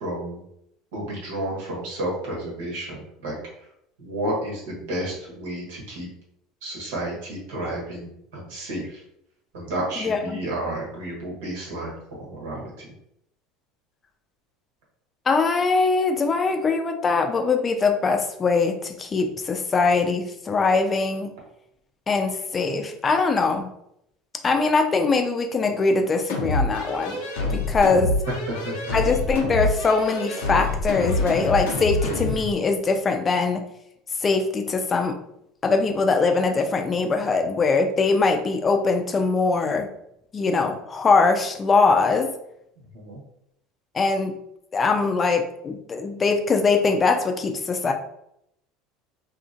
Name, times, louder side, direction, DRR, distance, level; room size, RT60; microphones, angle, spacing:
voice 1, 0.0-0.4 0.9-3.4 4.0-6.1 6.6-9.0 9.5-12.9 28.6-28.9 42.9-43.2, right 1 dB, 80° right, -3 dB, 1.1 m, -31 dB
voice 2, 10.0-10.4 15.3-21.3 22.1-23.7 24.4-27.2 27.5-28.1 28.9-33.6 34.2-35.2 35.6-39.9 40.3-42.3 43.9-44.4 44.7-47.9, left 4 dB, 30° left, 5 dB, 0.4 m, -22 dB
sound 1, 26.3-32.5, left 2 dB, 80° left, 0.6 m, -26 dB
2.7 x 2.6 x 2.5 m, 0.77 s
hypercardioid pair, 80°, 0 cm